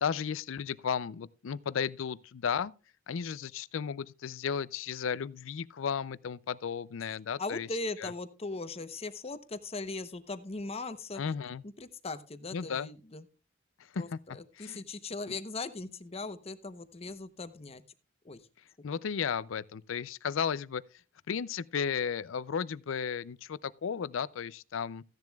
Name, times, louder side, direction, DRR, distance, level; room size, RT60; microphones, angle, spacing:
voice 1, 0.0-2.7 3.1-7.7 8.0-8.1 11.2-11.6 12.5-12.9 13.9-14.2 14.6-14.8 15.3-15.4 18.8-20.8 21.3-25.0, left 7 dB, 75° left, 0.4 m, -34 dB
voice 2, 7.4-11.2 11.6-13.3 14.0-17.8 18.2-18.5, left 3 dB, 30° left, 0.8 m, -39 dB
15.5 x 10.5 x 2.3 m
head